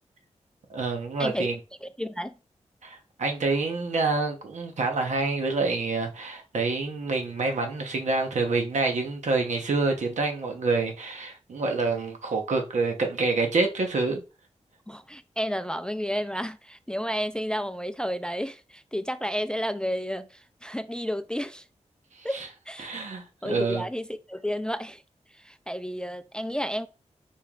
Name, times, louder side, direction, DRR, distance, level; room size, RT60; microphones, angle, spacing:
voice 1, 0.7-1.5 2.8-14.2 22.2-22.5 22.8-23.9, right 3 dB, 80° right, 1.0 m, -27 dB
voice 2, 1.8-2.3 14.9-21.6 22.2-22.9 23.4-25.0 25.3-26.9, equal, 5° left, 0.3 m, -31 dB
4.5 x 3.0 x 3.6 m
wide cardioid pair, 105°, 12 cm